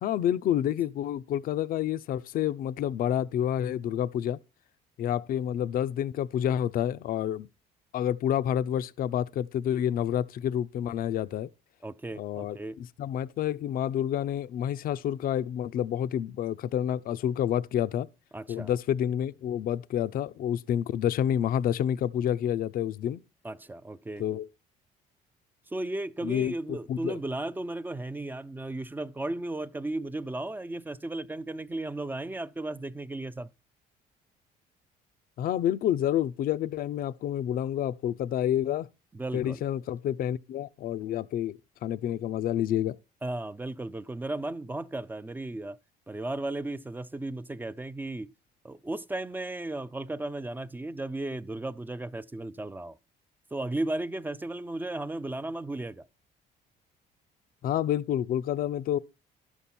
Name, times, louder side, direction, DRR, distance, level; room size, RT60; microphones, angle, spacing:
voice 1, 0.0-4.4 5.0-7.5 7.9-11.5 12.2-18.1 18.5-23.2 24.2-24.5 26.2-27.2 35.4-38.9 39.3-43.0 57.6-59.0, left 10 dB, 60° left, 0.5 m, -29 dB
voice 2, 11.8-12.8 18.3-18.7 23.4-24.2 25.7-33.5 39.1-39.6 43.2-45.8 46.1-48.3 48.6-53.0 53.5-56.1, right 2 dB, 10° right, 0.4 m, -35 dB
11.0 x 7.0 x 4.3 m
cardioid pair, 110°, 17 cm